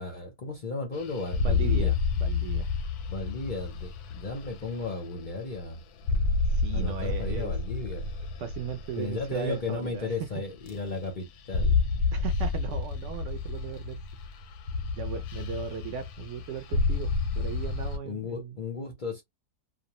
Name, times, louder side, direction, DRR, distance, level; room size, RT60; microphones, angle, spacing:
voice 1, 0.0-1.9 3.1-5.8 6.7-8.1 9.0-11.8 18.0-19.2, left 3 dB, 55° left, 0.5 m, -35 dB
sound 1, 0.9-5.7 6.0-10.3 10.6-11.1 11.4-18.0, left 4 dB, 85° left, 1.1 m, -30 dB
voice 2, 1.4-2.7 6.5-7.5 8.4-10.1 12.1-14.0 14.9-18.6, right 8 dB, 65° right, 0.8 m, -37 dB
2.5 x 2.1 x 2.8 m
omnidirectional pair, 1.6 m